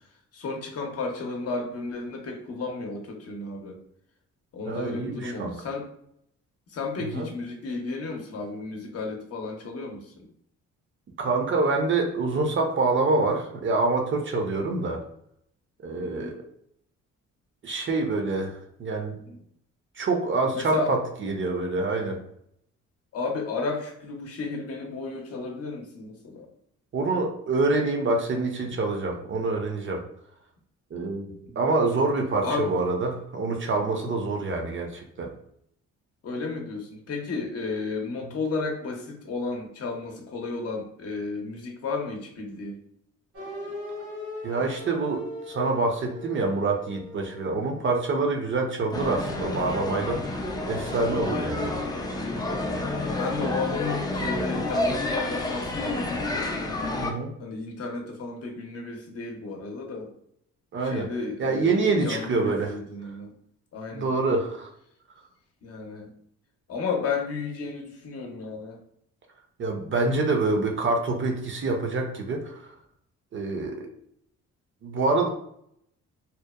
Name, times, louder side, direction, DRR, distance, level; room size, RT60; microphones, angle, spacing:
voice 1, 0.3-3.8 4.5-5.9 6.7-10.3 16.0-16.4 19.3-19.4 20.5-21.0 23.1-26.5 31.5-31.7 32.4-32.8 36.2-42.8 51.3-51.6 53.0-56.5 57.4-60.1 60.8-63.3 63.7-64.1 65.6-66.1 66.7-68.8, left 3 dB, 50° left, 1 dB, 0.7 m, -33 dB
voice 2, 4.7-5.6 7.1-7.3 11.2-15.0 15.8-16.4 17.6-18.5 18.8-19.2 20.0-22.2 26.9-30.0 30.9-31.3 31.6-35.3 44.4-51.8 57.0-57.3 60.7-61.1 61.4-62.8 63.9-64.7 69.6-72.6 73.3-73.9 74.8-75.3, right 3 dB, 40° right, 3 dB, 0.5 m, -26 dB
sound 1, 43.3-48.3, left 1 dB, 80° right, 1.1 m, -40 dB
sound 2, 48.9-57.1, left 2 dB, 15° left, 0.3 m, -29 dB
2.8 x 2.0 x 2.2 m, 0.70 s
cardioid pair, 90°, 30 cm